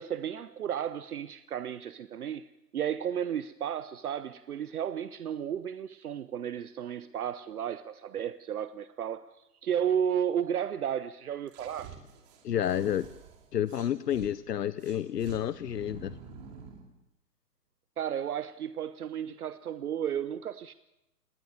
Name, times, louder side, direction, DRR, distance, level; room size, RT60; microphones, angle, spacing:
voice 1, 0.0-11.9 18.0-20.7, right 9 dB, 65° right, 0.9 m, -33 dB
sound 1, 11.5-14.3 14.8-16.9, right 7 dB, 25° right, 2.6 m, -49 dB
voice 2, 12.4-13.1 13.5-16.2, left 10 dB, 80° left, 0.8 m, -30 dB
20.0 x 19.0 x 7.2 m
hypercardioid pair, 155°, 47 cm